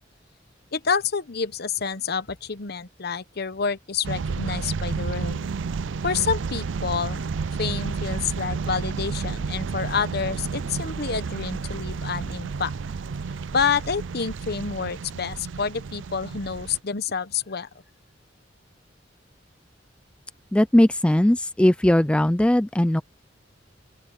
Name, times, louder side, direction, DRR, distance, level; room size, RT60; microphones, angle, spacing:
voice 1, 0.7-5.5 6.0-7.3 7.6-12.7 13.5-17.7, left 6 dB, 60° left, 1.0 m, -28 dB
sound 1, 4.0-16.8, right 5 dB, 85° right, 0.5 m, -31 dB
voice 2, 20.5-23.0, left 1 dB, 5° left, 0.3 m, -19 dB
open air
head